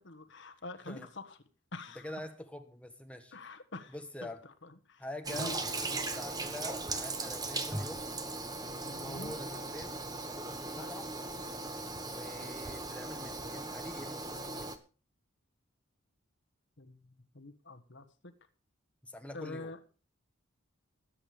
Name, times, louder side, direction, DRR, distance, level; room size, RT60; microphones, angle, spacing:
voice 1, 0.0-1.4 1.7-2.1 3.3-4.0 4.2-5.6 8.8-9.3 10.8-10.9 16.8-18.3 19.3-19.8, left 2 dB, 60° left, 8 dB, 1.4 m, -46 dB
voice 2, 2.0-3.3 3.9-4.4 5.0-8.0 9.0-9.9 10.2-11.1 12.1-14.4 19.0-19.7, left 1 dB, 5° left, 6 dB, 1.3 m, -45 dB
Toilet flush, 5.2-14.8, right 2 dB, 20° right, 1.2 m, -38 dB
21.0 x 8.8 x 3.3 m, 0.36 s
head